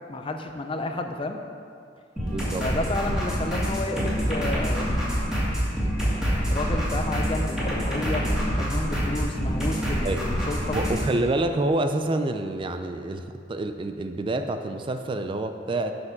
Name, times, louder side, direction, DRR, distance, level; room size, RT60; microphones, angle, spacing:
voice 1, 0.1-1.4 2.6-5.3 6.5-8.3 8.6-10.8, left 2 dB, 30° left, 5 dB, 0.5 m, -31 dB
sound 1, 2.2-11.1, equal, 5° right, 2.3 m, -26 dB
voice 2, 2.3-2.7 10.0-10.2 10.7-15.9, right 2 dB, 30° right, 7 dB, 0.4 m, -27 dB
7.9 x 5.9 x 5.9 m, 2.3 s
head